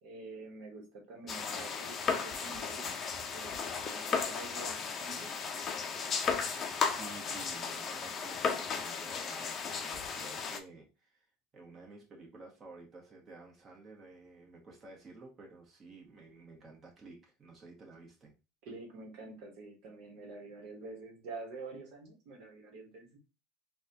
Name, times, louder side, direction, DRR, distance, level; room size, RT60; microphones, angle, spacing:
voice 1, 0.0-3.0 3.3-5.3 18.6-23.2, right 3 dB, 60° right, 0 dB, 1.1 m, -47 dB
sound 1, 1.3-10.6, left 5 dB, 30° left, 0.5 m, -35 dB
voice 2, 6.8-11.3 11.5-18.3, right 3 dB, 25° right, -2 dB, 1.3 m, -52 dB
4.1 x 2.3 x 2.6 m, 0.30 s
supercardioid pair, 130°, 0 cm